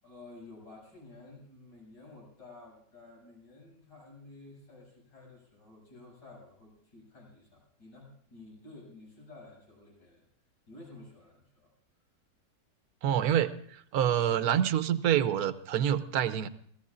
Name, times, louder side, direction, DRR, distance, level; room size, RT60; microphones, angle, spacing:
voice 1, 0.0-10.2 10.7-11.7, left 2 dB, 85° left, -3 dB, 8.4 m, -52 dB
voice 2, 13.0-16.5, right 10 dB, 65° right, 11 dB, 1.1 m, -27 dB
28.0 x 15.5 x 2.5 m, 0.63 s
omnidirectional pair, 1.9 m